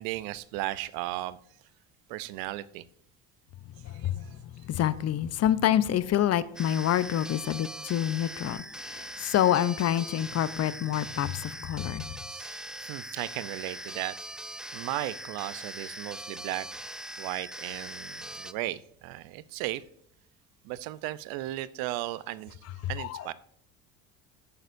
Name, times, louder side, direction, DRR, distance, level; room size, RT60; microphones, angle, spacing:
voice 1, 0.0-1.4 2.1-2.8 3.9-4.3 12.3-14.2 14.7-19.8 20.6-22.6 22.9-23.3, right 16 dB, 70° right, 0.7 m, -36 dB
voice 2, 3.8-12.2 23.0-23.3, left 11 dB, 45° left, 0.7 m, -27 dB
sound 1, 6.6-18.5, right 1 dB, ahead, 0.4 m, -41 dB
13.5 x 9.1 x 2.6 m
supercardioid pair, 85°, 37 cm